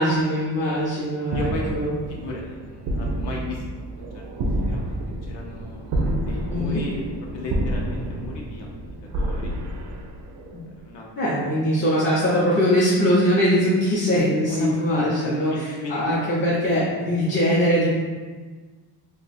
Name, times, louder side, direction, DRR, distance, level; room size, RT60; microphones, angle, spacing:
voice 1, 0.0-1.9 6.5-6.8 10.5-10.7 11.2-18.0, equal, 30° left, -8 dB, 0.6 m, -22 dB
voice 2, 1.3-1.7 2.1-4.2 4.7-5.9 6.2-7.0 7.3-8.7 9.1-9.5 10.7-11.1 14.5-14.7 14.9-16.3, left 2 dB, 75° left, -2 dB, 0.7 m, -34 dB
sound 1, 1.3-10.8, right 1 dB, 45° right, 0.4 m, -29 dB
2.6 x 2.2 x 4.0 m, 1.4 s
cardioid pair, 125°, 44 cm